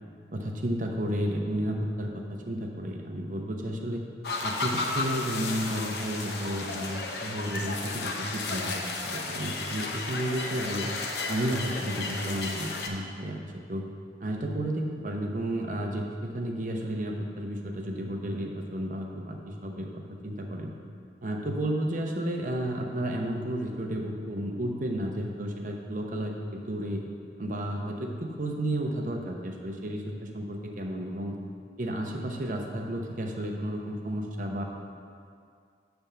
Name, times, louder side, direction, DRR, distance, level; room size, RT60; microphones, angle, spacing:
voice 1, 0.3-4.0 4.4-10.9 11.3-13.4 13.7-13.9 14.2-20.8 21.2-27.0 27.4-31.4 31.8-34.6, right 1 dB, 45° right, 1 dB, 0.8 m, -32 dB
sound 1, 4.2-12.9, left 3 dB, 65° left, 0.7 m, -33 dB
8.7 x 3.5 x 6.7 m, 2.2 s
head